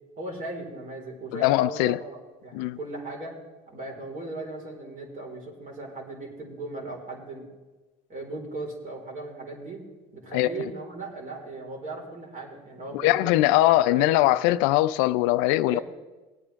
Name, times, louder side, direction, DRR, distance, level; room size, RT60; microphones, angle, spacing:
voice 1, 0.2-3.3 3.7-7.5 8.1-9.8 10.1-14.4 15.7-15.8, right 2 dB, 40° right, 4.4 m, -38 dB
voice 2, 1.3-2.0 2.5-2.8 10.3-10.5 12.9-15.8, left 16 dB, 75° left, 0.5 m, -21 dB
20.0 x 8.8 x 3.5 m
supercardioid pair, 95°, 21 cm